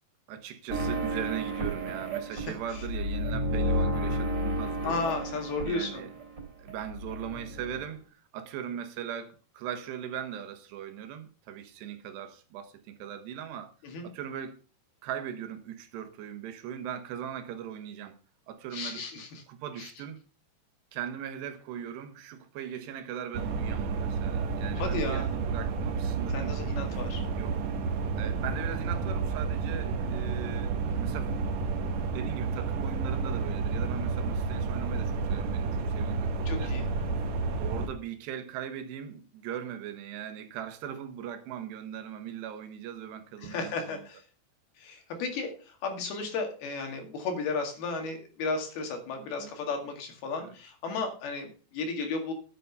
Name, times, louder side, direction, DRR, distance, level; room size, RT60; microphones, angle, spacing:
voice 1, 0.3-5.0 5.6-6.1 6.6-13.7 14.0-14.6 15.0-18.2 18.5-19.0 19.5-20.2 20.9-26.6 27.3-27.6 28.2-31.3 32.1-36.7 37.6-44.1 49.2-49.5 50.4-50.6, right 9 dB, 85° right, 3.3 m, -39 dB
sound 1, 0.7-6.4 6.7-7.9, right 1 dB, 25° right, 3.7 m, -32 dB
voice 2, 4.8-6.1 13.8-14.1 18.7-19.4 19.8-19.9 24.8-25.3 26.3-27.2 36.5-36.9 43.4-44.2 44.8-52.3, left 4 dB, 70° left, 3.9 m, -34 dB
sound 2, 23.3-37.9, right 4 dB, 65° right, 1.8 m, -30 dB
11.0 x 8.1 x 5.4 m
omnidirectional pair, 4.8 m